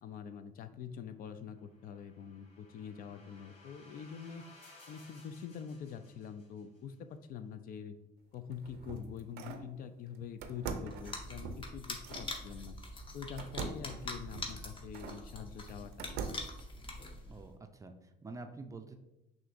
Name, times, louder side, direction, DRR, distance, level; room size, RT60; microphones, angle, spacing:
voice 1, 0.0-4.4 4.9-7.9 8.3-12.8 13.1-16.1, left 7 dB, 60° left, 10 dB, 0.4 m, -45 dB
sound 1, 1.5-6.8, left 2 dB, 85° left, 1.2 m, -60 dB
sound 2, 8.3-9.7 10.4-12.3 13.4-15.2 15.7-16.6, right 5 dB, 75° right, 0.5 m, -43 dB
sound 3, 10.9-17.5, left 2 dB, 30° left, 0.7 m, -44 dB
voice 2, 17.3-19.0, right 3 dB, 20° right, 6 dB, 0.4 m, -47 dB
6.2 x 2.6 x 2.5 m, 0.90 s
cardioid pair, 110°, 17 cm